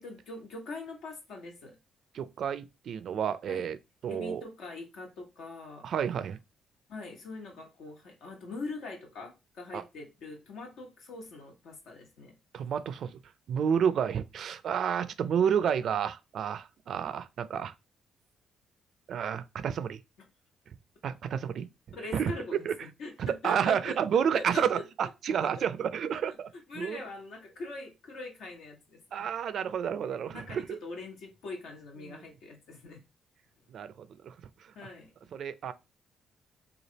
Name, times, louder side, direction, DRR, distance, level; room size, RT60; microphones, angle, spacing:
voice 1, 0.0-1.8 3.5-3.7 4.1-5.9 6.9-12.3 21.9-24.8 25.4-25.7 26.7-29.3 30.3-33.0 34.7-35.1, left 2 dB, 80° left, 1.3 m, -42 dB
voice 2, 2.1-3.8 4.0-4.4 5.8-6.4 9.7-9.8 12.5-13.2 13.5-17.7 19.1-20.0 21.0-21.7 22.1-22.3 22.7-22.8 23.2-26.5 26.7-27.0 29.1-30.8 32.0-32.2 33.7-34.3 35.3-35.7, right 8 dB, 65° right, 0.4 m, -30 dB
3.3 x 2.4 x 4.0 m
cardioid pair, 90°, 0 cm